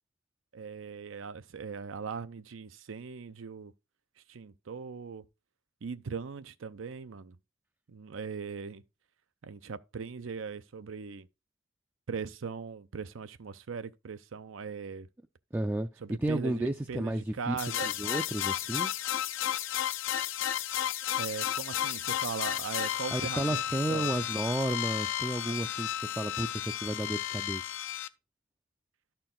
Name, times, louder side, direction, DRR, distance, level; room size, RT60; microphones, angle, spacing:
voice 1, 0.5-3.7 4.3-5.3 5.8-7.4 7.9-8.8 9.4-11.3 12.1-15.1 16.0-17.9 21.1-24.2, right 5 dB, 85° right, 0.5 m, -39 dB
voice 2, 15.5-18.9 23.1-27.7, right 1 dB, 10° right, 0.3 m, -32 dB
sound 1, 17.6-28.1, left 11 dB, 75° left, 0.5 m, -33 dB
12.5 x 4.5 x 3.7 m
head